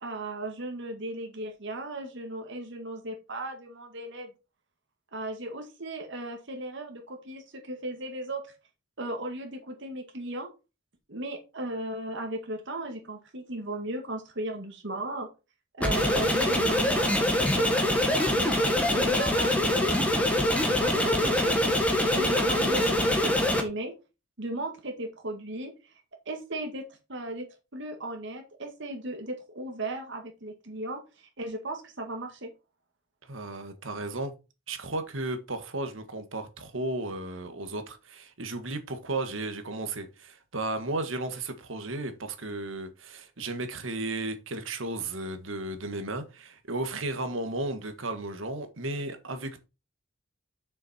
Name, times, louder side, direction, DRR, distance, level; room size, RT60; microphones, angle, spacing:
voice 1, 0.0-4.3 5.1-8.5 9.0-10.5 11.1-15.3 15.8-18.6 18.9-20.1 20.8-23.9 24.4-25.9 26.3-27.5 27.7-32.5, right 1 dB, 65° right, 2.0 m, -36 dB
sound 1, 15.8-23.6, left 1 dB, 5° left, 1.9 m, -24 dB
voice 2, 33.2-34.3 34.7-49.7, right 2 dB, 90° right, 1.7 m, -34 dB
7.5 x 6.4 x 4.4 m
head